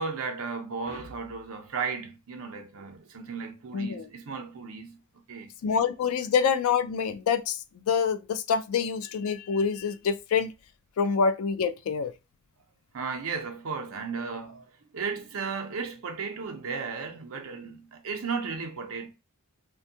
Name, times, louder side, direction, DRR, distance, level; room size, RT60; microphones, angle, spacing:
voice 1, 0.0-5.0 5.3-5.5 12.9-14.6 14.9-19.1, right 5 dB, 65° right, 0.5 m, -35 dB
voice 2, 3.7-4.1 5.6-7.6 7.9-10.5 11.0-12.1, left 6 dB, 75° left, 0.3 m, -26 dB
2.5 x 2.2 x 2.7 m
head